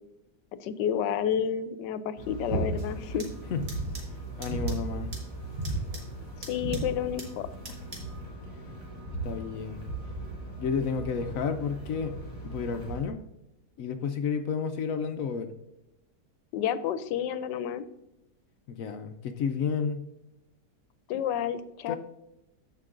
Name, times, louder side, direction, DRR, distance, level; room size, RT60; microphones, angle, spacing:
voice 1, 0.6-3.3 6.5-7.5 16.5-17.9 21.1-22.0, left 9 dB, 85° left, 13 dB, 1.2 m, -30 dB
sound 1, 2.2-13.0, right 2 dB, 15° right, 3.1 m, -36 dB
sound 2, 2.8-8.2, right 2 dB, 40° right, 2.0 m, -48 dB
voice 2, 4.4-5.1 9.2-9.8 10.6-12.2 12.4-13.2 13.8-15.5 18.7-20.0 21.9-22.0, left 6 dB, 65° left, 8 dB, 0.8 m, -31 dB
14.0 x 5.3 x 2.5 m, 0.90 s
omnidirectional pair, 1.9 m